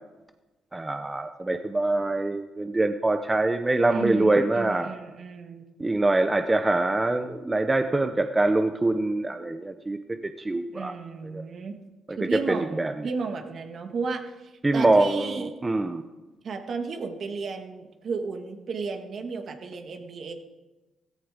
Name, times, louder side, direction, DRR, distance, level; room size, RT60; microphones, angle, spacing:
voice 1, 0.7-4.9 5.8-11.0 11.3-11.4 12.1-12.9 14.6-16.0, right 2 dB, 20° right, 7 dB, 0.7 m, -24 dB
voice 2, 3.9-5.6 10.7-11.8 12.2-15.5 16.4-20.3, right 4 dB, 55° right, 5 dB, 1.8 m, -34 dB
16.0 x 14.5 x 3.7 m, 1.1 s
cardioid pair, 90°, 0 cm